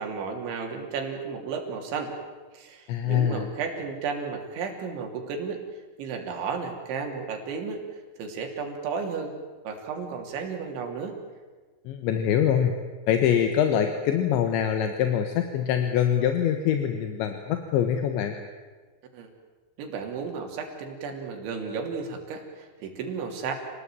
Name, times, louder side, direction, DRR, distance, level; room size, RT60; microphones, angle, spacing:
voice 1, 0.0-2.1 2.5-5.6 6.0-7.8 8.2-9.4 9.7-11.2 19.1-19.3 19.8-23.5, right 5 dB, 80° right, 3 dB, 5.3 m, -33 dB
voice 2, 2.9-3.5 11.9-12.7 13.1-18.4, left 9 dB, 80° left, 6 dB, 3.6 m, -24 dB
28.0 x 19.0 x 9.0 m, 1.4 s
omnidirectional pair, 5.3 m